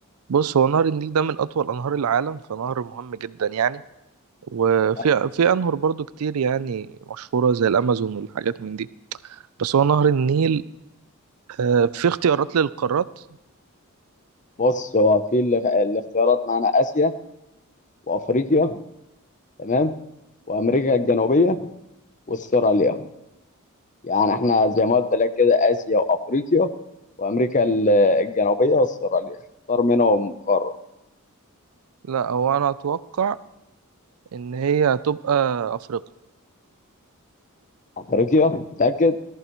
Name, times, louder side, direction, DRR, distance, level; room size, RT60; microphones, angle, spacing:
voice 1, 0.3-3.8 4.5-8.9 9.6-10.6 11.6-13.1 32.1-33.4 34.3-36.0, right 7 dB, 80° right, 18 dB, 0.4 m, -22 dB
voice 2, 14.6-17.1 18.1-18.8 19.6-19.9 20.5-21.7 22.3-23.1 24.0-26.7 27.2-29.4 29.7-30.7 38.1-39.2, left 3 dB, 35° left, 11 dB, 0.7 m, -20 dB
17.5 x 13.5 x 3.1 m, 0.90 s
head